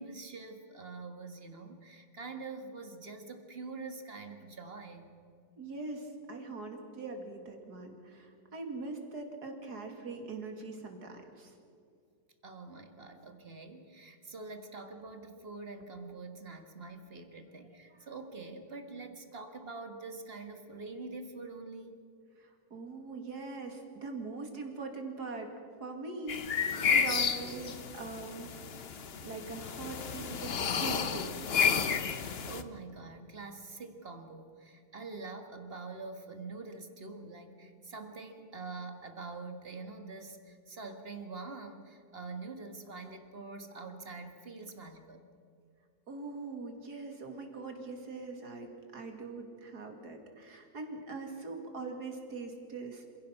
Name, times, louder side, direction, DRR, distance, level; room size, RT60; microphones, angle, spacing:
voice 1, 0.0-5.2 12.4-22.0 32.1-45.2, right 3 dB, 30° right, 6 dB, 1.7 m, -45 dB
voice 2, 5.6-11.5 22.4-25.5 25.8-28.5 29.2-31.3 46.1-53.1, right 3 dB, 55° right, 4 dB, 2.9 m, -42 dB
sound 1, 26.3-32.6, left 6 dB, 45° left, 0.8 m, -31 dB
26.5 x 16.5 x 5.9 m, 2.5 s
omnidirectional pair, 2.1 m